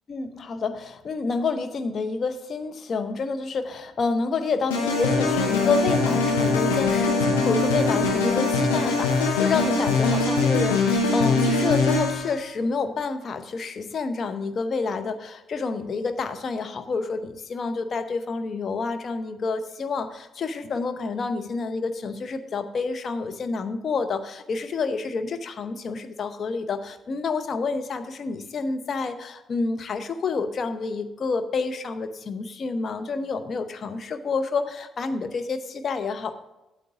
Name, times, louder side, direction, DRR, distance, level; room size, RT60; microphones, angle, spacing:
voice 1, 0.1-36.4, left 4 dB, 45° left, 9 dB, 0.8 m, -28 dB
sound 1, 4.7-12.3, left 3 dB, 80° left, 1.2 m, -22 dB
8.6 x 8.0 x 3.7 m, 0.99 s
figure-of-eight pair, 40°, 0 cm